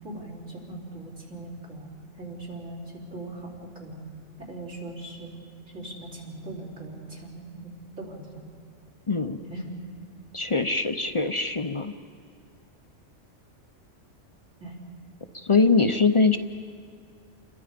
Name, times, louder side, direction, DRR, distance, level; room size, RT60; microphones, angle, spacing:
voice 1, 0.0-1.9 2.2-4.0 4.4-5.3 5.7-7.7 8.0-8.3 9.4-9.7 14.6-14.7, right 2 dB, 75° right, -3 dB, 4.6 m, -40 dB
voice 2, 9.1-9.4 10.3-11.9 15.4-16.4, left 4 dB, 35° left, 8 dB, 0.5 m, -22 dB
29.0 x 22.0 x 5.1 m, 2.2 s
omnidirectional pair, 1.3 m